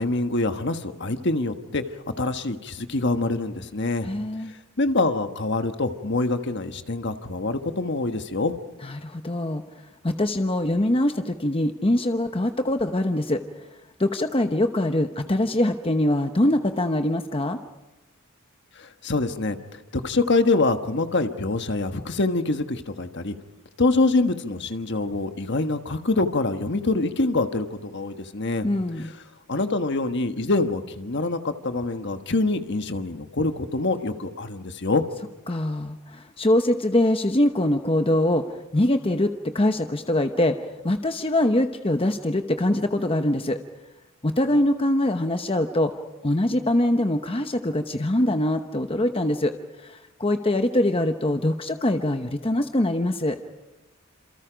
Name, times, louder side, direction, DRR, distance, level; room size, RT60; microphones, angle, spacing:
voice 1, 0.0-1.8 2.2-4.1 4.8-8.5 18.8-23.3 23.8-28.7 29.0-29.1 29.5-35.0, left 2 dB, 55° left, 8 dB, 1.4 m, -25 dB
voice 2, 4.0-4.5 8.8-9.6 10.0-13.4 14.0-17.6 28.6-29.1 35.5-38.4 38.7-40.6 40.8-43.6 44.2-45.9 46.2-49.5 49.8-53.4, left 1 dB, 25° left, 7 dB, 1.0 m, -23 dB
28.5 x 27.5 x 5.1 m, 1.1 s
head